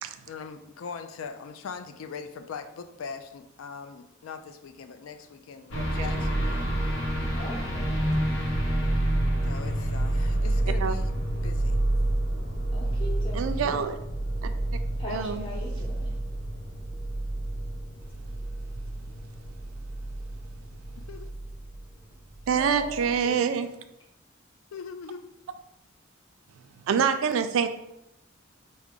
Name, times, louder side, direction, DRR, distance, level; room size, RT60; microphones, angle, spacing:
voice 1, 0.3-6.7 9.4-11.1 11.4-11.8 21.1-21.3 24.7-25.3, left 6 dB, 90° left, 9 dB, 0.4 m, -41 dB
sound 1, 5.7-21.9 22.3-23.2, right 1 dB, 70° left, 0.8 m, -29 dB
voice 2, 5.8-6.1 10.8-10.9 13.3-14.0 14.4-14.5 15.1-15.5 22.5-23.7 26.9-27.7, right 7 dB, 85° right, 9 dB, 0.3 m, -26 dB
voice 3, 7.3-8.1 12.7-13.7 14.9-16.2 22.6-23.8, left 2 dB, 25° left, -4 dB, 1.0 m, -40 dB
4.7 x 2.1 x 3.6 m, 0.85 s
head